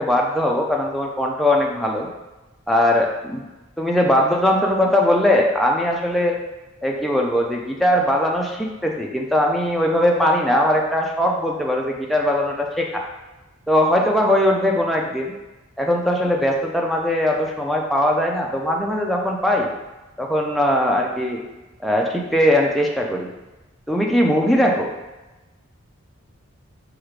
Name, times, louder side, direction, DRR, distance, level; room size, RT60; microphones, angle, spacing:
voice 1, 0.0-2.1 2.7-3.5 3.8-6.4 6.8-13.0 13.7-15.3 15.8-19.7 20.2-21.4 21.8-23.3 23.9-24.9, left 1 dB, ahead, -1 dB, 0.3 m, -20 dB
4.8 x 2.4 x 3.2 m, 1.1 s
head